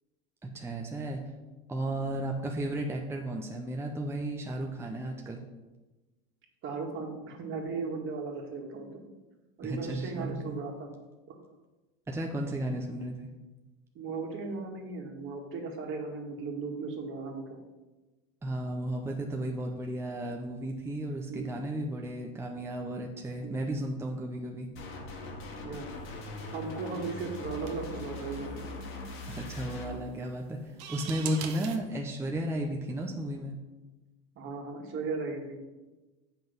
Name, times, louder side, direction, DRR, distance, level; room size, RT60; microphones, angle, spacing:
voice 1, 0.4-1.2 1.7-5.4 9.6-10.6 12.1-13.3 18.4-24.7 29.3-33.5, right 1 dB, 10° right, 1 dB, 0.8 m, -34 dB
voice 2, 6.6-9.0 9.6-10.9 14.0-17.6 21.3-21.5 23.4-23.6 25.6-25.9 26.5-28.6 34.4-35.6, right 4 dB, 45° right, 2 dB, 2.0 m, -37 dB
sound 1, 24.8-29.9, left 2 dB, 45° left, 1.8 m, -41 dB
sound 2, 25.9-31.8, right 8 dB, 60° right, 1.2 m, -45 dB
7.8 x 5.8 x 5.4 m, 1.2 s
supercardioid pair, 105°, 30 cm